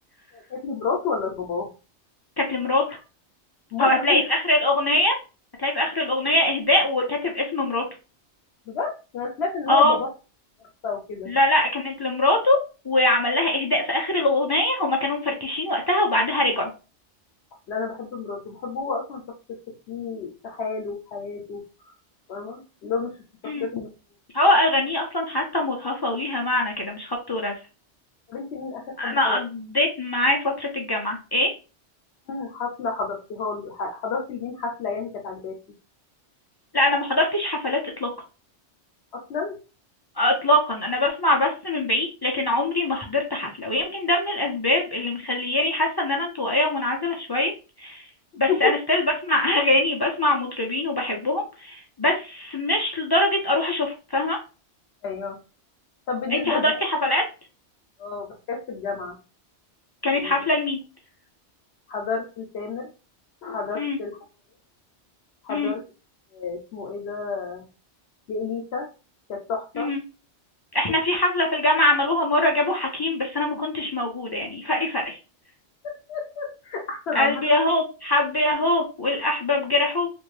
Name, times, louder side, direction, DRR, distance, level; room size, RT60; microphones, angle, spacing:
voice 1, 0.3-1.7 3.7-4.2 8.7-10.1 10.8-11.3 17.7-19.2 19.9-21.6 22.3-23.9 28.3-29.4 32.3-35.6 39.1-39.5 48.5-48.8 55.0-55.4 56.1-56.7 58.0-59.2 60.1-60.3 61.9-62.9 63.4-64.2 65.4-65.8 66.3-67.7 68.3-68.9 69.3-69.9 75.8-77.4, left 5 dB, 70° left, 3 dB, 0.9 m, -30 dB
voice 2, 2.4-2.8 3.8-5.1 5.6-7.8 9.7-10.0 11.3-12.6 12.8-16.7 23.5-23.7 24.3-27.5 29.0-31.5 36.7-38.1 40.2-47.5 47.8-48.0 48.4-54.4 56.3-57.2 60.0-60.8 63.8-64.0 65.5-65.7 69.8-70.0 70.7-75.2 77.1-80.1, left 1 dB, 40° left, -1 dB, 0.3 m, -23 dB
2.9 x 2.6 x 3.1 m, 0.32 s
omnidirectional pair, 1.2 m